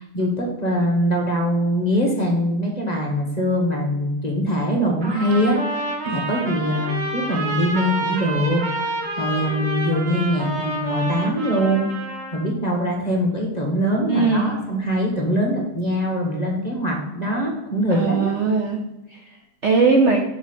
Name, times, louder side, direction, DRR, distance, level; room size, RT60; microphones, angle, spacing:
voice 1, 0.0-11.9 12.3-18.3, equal, 25° left, 0 dB, 1.1 m, -23 dB
Trumpet, 5.0-12.5, right 1 dB, 85° right, 2.7 m, -28 dB
voice 2, 14.1-14.6 17.9-18.8 19.1-19.3 19.6-20.2, right 4 dB, 60° right, 2 dB, 0.8 m, -19 dB
6.1 x 5.6 x 4.4 m, 1.0 s
omnidirectional pair, 1.9 m